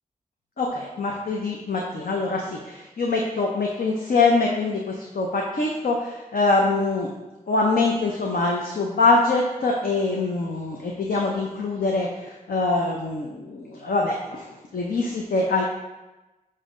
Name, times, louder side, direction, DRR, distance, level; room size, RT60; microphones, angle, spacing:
voice 1, 0.6-7.1 7.5-15.6, left 3 dB, 80° left, -1 dB, 0.7 m, -24 dB
7.2 x 2.8 x 4.9 m, 1.1 s
wide cardioid pair, 65°, 15 cm